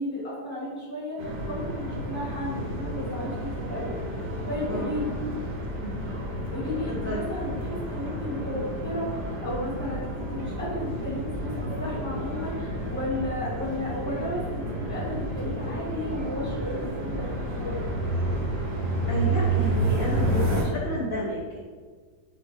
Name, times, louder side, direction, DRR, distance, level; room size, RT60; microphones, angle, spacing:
voice 1, 0.0-4.1 4.5-5.1 6.5-17.8, left 1 dB, 10° right, -8 dB, 0.9 m, -33 dB
sound 1, 1.2-20.6, right 1 dB, 70° right, 1.4 m, -30 dB
voice 2, 4.7-5.0 5.8-6.1 6.9-7.2 19.1-21.7, equal, 60° left, -5 dB, 1.0 m, -32 dB
6.3 x 2.3 x 3.1 m, 1.5 s
omnidirectional pair, 2.0 m